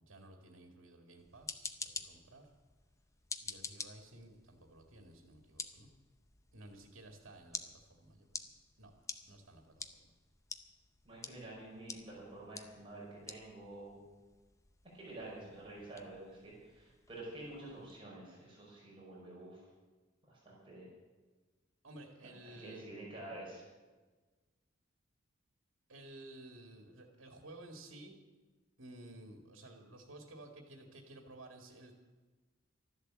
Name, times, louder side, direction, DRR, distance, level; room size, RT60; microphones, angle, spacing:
voice 1, 0.0-2.5 3.4-5.9 6.5-8.5 8.8-8.9 9.3-10.1 21.8-22.9 25.9-28.2 28.8-31.9, right 1 dB, 90° right, 3 dB, 2.0 m, -54 dB
sound 1, 1.2-18.0, left 4 dB, 15° left, 0.6 m, -50 dB
voice 2, 11.1-14.0 14.9-19.6 20.3-20.9 22.4-23.6, right 2 dB, 25° right, -4 dB, 5.3 m, -49 dB
13.0 x 11.5 x 7.5 m, 1.3 s
head